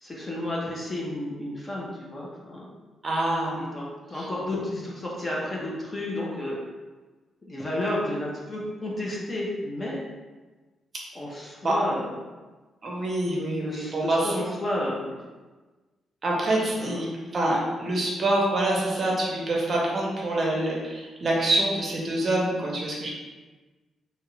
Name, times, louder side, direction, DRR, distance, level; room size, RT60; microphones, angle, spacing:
voice 1, 0.0-2.7 3.6-6.6 7.5-10.0 11.1-12.1 13.6-15.2 16.8-17.0, left 1 dB, 20° left, -4 dB, 0.5 m, -32 dB
voice 2, 3.0-3.6 4.1-4.3 11.6-11.7 12.8-14.3 16.2-17.1 17.3-23.1, right 1 dB, 35° right, -3 dB, 0.6 m, -26 dB
2.8 x 2.4 x 3.1 m, 1.3 s
cardioid pair, 150°, 0 cm